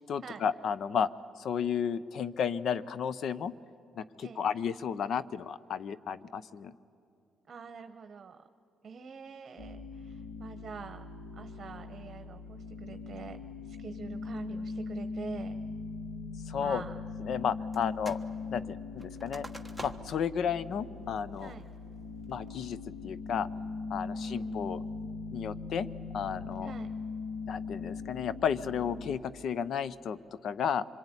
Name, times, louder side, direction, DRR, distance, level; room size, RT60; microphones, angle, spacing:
voice 1, 0.1-1.1 1.4-3.5 4.0-6.7 16.5-16.8 17.3-18.2 18.5-19.5 19.8-21.5 22.3-22.8 23.0-23.5 23.9-24.8 25.3-25.9 26.1-26.7 27.5-30.8, left 7 dB, 65° left, 16 dB, 0.7 m, -33 dB
voice 2, 7.5-8.4 8.8-11.0 11.4-15.6 16.6-17.0 21.4-21.6 24.1-24.7 26.6-26.9, right 6 dB, 45° right, 8 dB, 1.1 m, -45 dB
sound 1, 9.6-29.2, left 4 dB, 80° left, 3.2 m, -40 dB
sound 2, 17.7-18.3 18.6-20.3 20.7-20.8 21.3-21.7 22.2-22.6, right 1 dB, ahead, 1.3 m, -47 dB
26.0 x 22.5 x 9.9 m, 2.7 s
cardioid pair, 90°, 0 cm